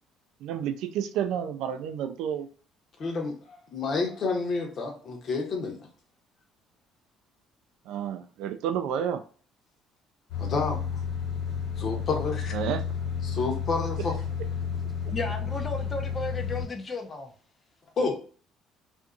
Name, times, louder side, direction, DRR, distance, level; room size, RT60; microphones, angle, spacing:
voice 1, 0.4-2.5 7.9-9.2 12.5-12.8, right 9 dB, 75° right, 0.3 m, -30 dB
voice 2, 3.0-5.9 10.4-10.9 11.8-12.6 13.2-14.2 18.0-18.2, left 4 dB, 55° left, 0.9 m, -29 dB
sound 1, 10.3-16.6, left 7 dB, 70° left, 1.4 m, -31 dB
voice 3, 15.1-17.3, left 2 dB, 35° left, 0.6 m, -34 dB
2.6 x 2.6 x 2.3 m
supercardioid pair, 70°, 0 cm